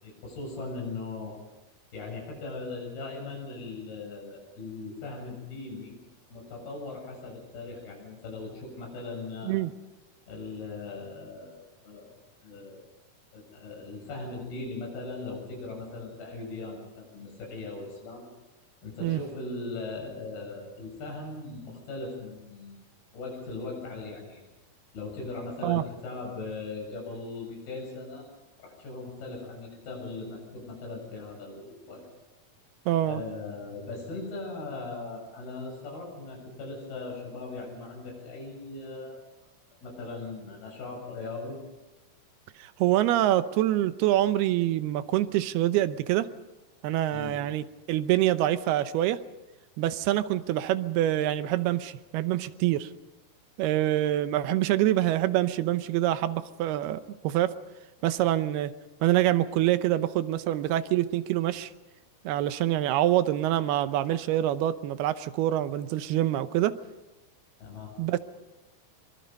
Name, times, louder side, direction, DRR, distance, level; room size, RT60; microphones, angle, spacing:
voice 1, 0.0-1.4 1.9-5.9 6.3-9.6 10.3-12.1 12.4-12.8 13.3-18.2 18.8-22.8 23.1-24.4 24.9-28.3 28.6-32.0 33.0-39.2 39.8-41.6 47.1-47.4 67.6-68.0, left 3 dB, 75° left, 0 dB, 9.4 m, -39 dB
voice 2, 32.9-33.2 42.6-46.3 46.8-49.2 49.8-52.9 53.6-57.5 58.0-58.7 59.0-61.7 62.2-66.8 68.0-68.2, right 13 dB, 85° right, 12 dB, 2.9 m, -25 dB
24.5 x 24.0 x 5.4 m, 1.0 s
omnidirectional pair, 4.5 m